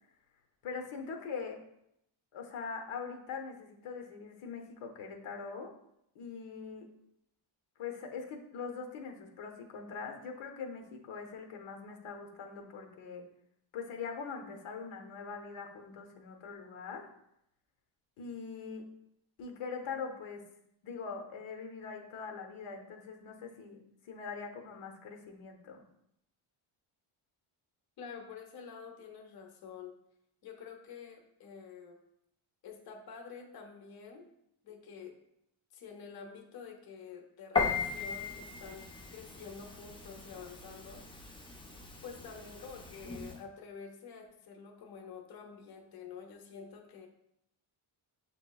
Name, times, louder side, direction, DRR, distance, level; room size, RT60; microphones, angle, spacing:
voice 1, 0.6-1.6 2.3-5.7 6.1-6.9 7.8-13.2 13.7-17.1 18.2-18.9 19.4-20.5 20.8-25.8, left 5 dB, 85° left, 3 dB, 0.8 m, -42 dB
voice 2, 28.0-29.9 30.4-32.0 32.6-34.3 34.6-35.2 35.7-41.0 42.0-47.1, left 6 dB, 50° left, 2 dB, 0.7 m, -48 dB
Piano, 37.6-43.4, left 5 dB, 10° left, 0.3 m, -38 dB
6.9 x 3.0 x 2.3 m, 0.77 s
cardioid pair, 120°, 49 cm